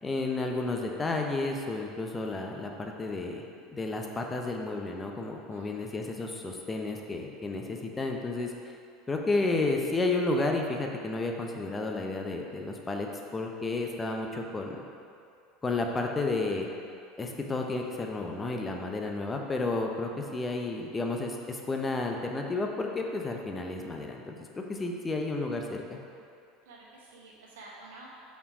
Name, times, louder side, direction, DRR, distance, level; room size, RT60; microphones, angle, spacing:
voice 1, 0.0-3.4 3.7-8.5 9.1-14.8 15.6-16.7 17.2-26.0, left 2 dB, 20° left, 2 dB, 0.8 m, -32 dB
voice 2, 5.5-5.9 26.6-28.1, right 2 dB, 70° right, -4 dB, 1.3 m, -50 dB
5.5 x 4.6 x 4.9 m, 2.5 s
figure-of-eight pair, 75°, 0 cm